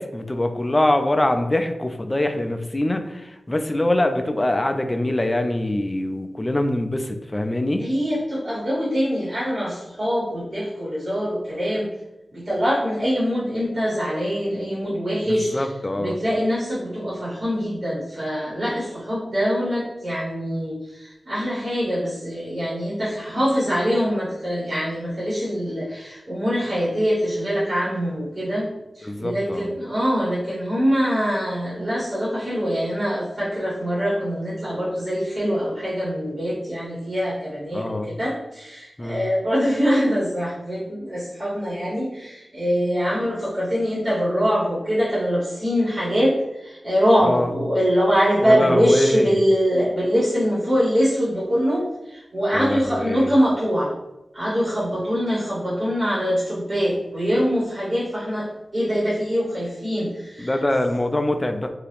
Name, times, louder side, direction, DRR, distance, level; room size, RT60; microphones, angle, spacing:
voice 1, 0.0-7.9 15.3-16.2 29.0-29.7 37.7-38.1 39.0-39.2 47.2-47.5 48.4-49.3 52.5-53.4 60.4-61.7, left 1 dB, 20° left, 6 dB, 0.3 m, -24 dB
voice 2, 7.8-11.9 12.3-15.6 16.0-46.3 46.6-53.9 54.3-58.5 58.7-60.5, equal, 40° right, -9 dB, 1.3 m, -23 dB
2.7 x 2.5 x 3.3 m, 0.95 s
wide cardioid pair, 90°, 0 cm